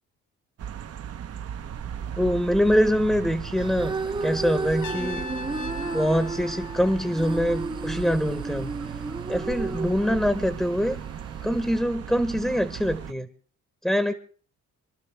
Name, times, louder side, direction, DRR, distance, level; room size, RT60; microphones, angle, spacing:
sound 1, 0.6-13.1, right 9 dB, 55° right, 0.8 m, -37 dB
voice 1, 2.2-5.3 5.9-8.7 9.3-11.0 11.4-13.3 13.8-14.1, equal, ahead, 10 dB, 1.0 m, -24 dB
sound 2, 3.6-11.8, right 3 dB, 15° right, 0.7 m, -33 dB
Trumpet, 4.8-7.8, left 3 dB, 90° left, 1.2 m, -39 dB
26.0 x 12.0 x 3.3 m, 0.43 s
cardioid pair, 90°, 30 cm